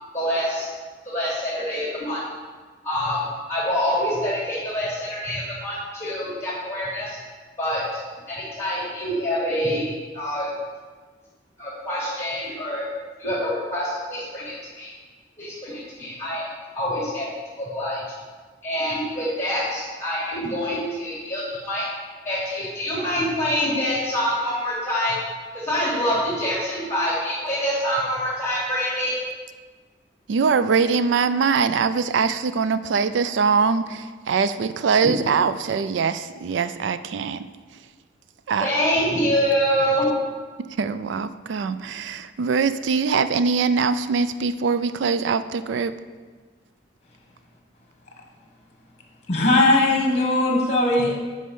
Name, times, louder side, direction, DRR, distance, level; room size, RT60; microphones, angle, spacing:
voice 1, 0.1-0.7 1.0-2.2 2.8-7.2 7.6-8.0 8.3-9.9 10.1-10.5 11.6-12.9 13.2-14.9 15.4-17.3 17.6-18.0 18.6-21.9 22.2-25.2 25.5-29.1 35.0-35.1 38.6-40.1, equal, 15° left, -10 dB, 2.6 m, -26 dB
voice 2, 30.3-37.5 38.5-38.9 40.7-45.9, right 5 dB, 80° right, 13 dB, 0.4 m, -22 dB
voice 3, 49.3-51.2, left 2 dB, 35° left, 1 dB, 1.4 m, -19 dB
8.6 x 5.3 x 5.4 m, 1.4 s
head